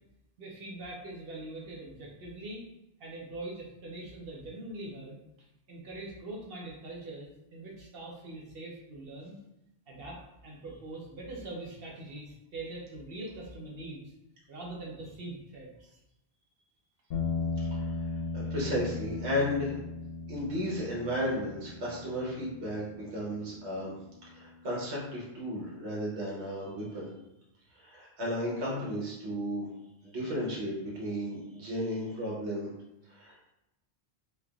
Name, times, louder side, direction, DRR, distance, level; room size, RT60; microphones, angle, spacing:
voice 1, 0.4-2.7 3.0-9.4 9.9-14.1 14.5-16.0, right 2 dB, 65° right, -3 dB, 0.9 m, -43 dB
sound 1, 17.1-25.4, left 3 dB, 65° left, 0.8 m, -38 dB
voice 2, 17.7-19.8 20.3-23.9 24.3-27.1 27.7-29.7 30.0-32.7 33.1-33.5, equal, 85° right, -5 dB, 1.2 m, -34 dB
3.3 x 2.4 x 2.2 m, 0.91 s
omnidirectional pair, 1.1 m